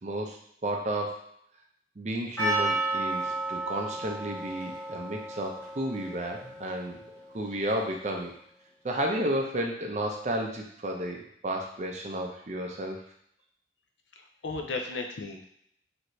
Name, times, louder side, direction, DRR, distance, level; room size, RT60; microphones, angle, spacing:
voice 1, 0.0-1.3 2.0-7.0 7.3-8.3 8.8-13.0, right 1 dB, 40° right, 1 dB, 0.5 m, -32 dB
Percussion, 2.4-7.3, right 2 dB, 10° left, 1.1 m, -32 dB
voice 2, 14.2-15.4, left 3 dB, 75° left, 3 dB, 0.5 m, -35 dB
3.3 x 2.6 x 3.0 m, 0.70 s
head